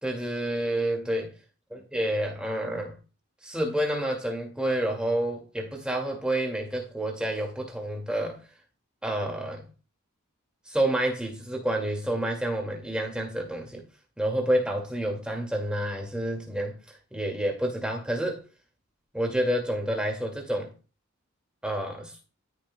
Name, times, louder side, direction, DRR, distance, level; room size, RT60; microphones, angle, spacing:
voice 1, 0.0-1.3 1.9-2.9 3.4-8.4 9.0-9.7 10.7-13.8 14.2-16.8 17.1-18.4 19.1-20.7 21.6-22.1, right 1 dB, 5° right, 2.1 m, -29 dB
13.0 x 6.8 x 2.2 m
head